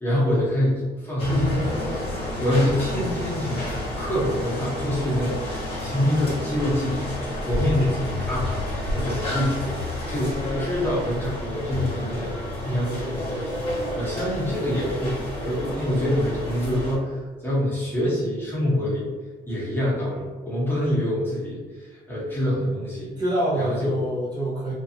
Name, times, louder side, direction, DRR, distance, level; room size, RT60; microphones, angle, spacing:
voice 1, 0.0-8.6 8.9-9.8 10.1-12.3 12.6-19.1 19.5-23.1 23.5-24.0, left 1 dB, 10° left, -8 dB, 1.1 m, -26 dB
sound 1, 1.2-17.0, left 1 dB, 35° left, 1.1 m, -30 dB
voice 2, 23.2-24.7, right 1 dB, 25° right, -9 dB, 1.0 m, -26 dB
2.5 x 2.5 x 2.7 m, 1.4 s
cardioid pair, 110°, 17 cm